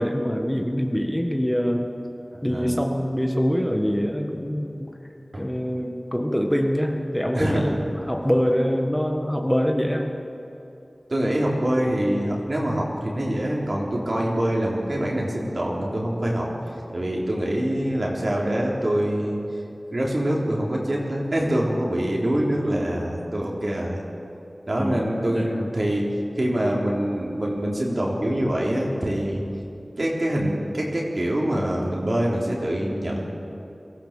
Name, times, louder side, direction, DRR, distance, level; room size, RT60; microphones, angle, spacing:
voice 1, 0.0-1.9 2.4-4.9 5.4-10.1 24.8-25.7, equal, 10° left, 3 dB, 1.5 m, -24 dB
voice 2, 2.3-2.8 5.3-5.5 7.3-7.8 11.1-16.5 16.9-19.4 19.9-24.0 24.7-29.4 30.0-33.2, right 1 dB, 55° right, -2 dB, 3.9 m, -25 dB
23.0 x 15.5 x 7.7 m, 2.8 s
wide cardioid pair, 60°, 0 cm